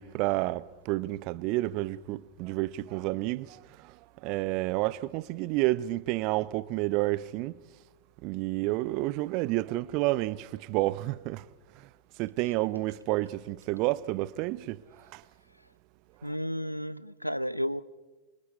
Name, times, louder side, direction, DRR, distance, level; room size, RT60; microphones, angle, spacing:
voice 1, 0.0-4.0 4.2-7.6 8.2-11.4 12.2-14.8 15.1-15.2, right 18 dB, 45° right, 0.7 m, -30 dB
voice 2, 16.2-17.8, equal, 90° left, 0.6 m, -32 dB
27.5 x 25.0 x 4.2 m
figure-of-eight pair, 90°, 0 cm